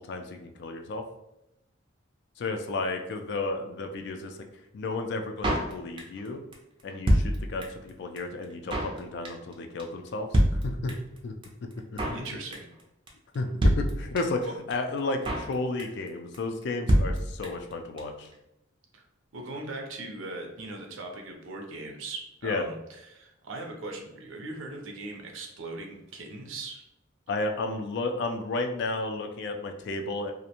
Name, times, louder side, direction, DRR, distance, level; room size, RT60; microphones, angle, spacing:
voice 1, 0.1-1.0 2.4-4.4 4.7-6.4 6.8-11.0 11.2-11.3 11.9-12.2 13.3-14.4 14.7-18.3 22.4-22.6 27.3-30.3, left 3 dB, 60° left, 5 dB, 0.3 m, -32 dB
Drum kit, 5.4-6.3 6.5-6.6 6.8-7.9 8.2-8.3 8.4-9.0 9.2-9.5 9.8-9.9 10.1-10.2 10.3-11.2 11.4-11.5 11.7-12.3 12.5-12.8 13.1-13.2 13.3-13.4 13.6-14.4 14.7-14.8 15.0-15.5 15.8-16.1 16.3-16.4 16.6-16.7 16.9-17.7 18.0-18.1 18.2-18.3, equal, 25° right, 0.4 m, -25 dB
voice 2, 12.1-12.7 14.4-14.5 18.9-19.0 19.3-26.8, right 2 dB, 80° right, 2 dB, 0.5 m, -39 dB
2.5 x 2.0 x 2.8 m, 0.87 s
head